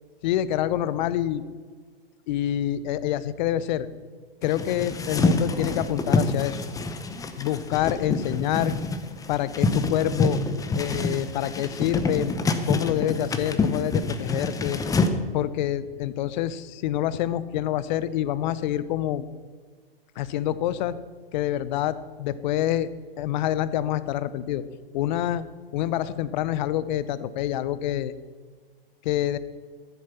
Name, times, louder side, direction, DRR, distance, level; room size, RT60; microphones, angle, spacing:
voice 1, 0.2-1.4 2.3-3.9 4.4-6.6 7.4-8.7 9.3-10.4 10.7-12.3 12.7-14.8 15.3-19.3 20.2-21.0 21.3-22.9 23.2-24.6 24.9-25.4 25.7-28.1 29.0-29.4, left 12 dB, 50° left, 16 dB, 0.7 m, -26 dB
sound 1, 4.4-15.1, left 3 dB, 10° left, 0.7 m, -27 dB
14.0 x 7.5 x 5.7 m, 1.5 s
hypercardioid pair, 110°, 29 cm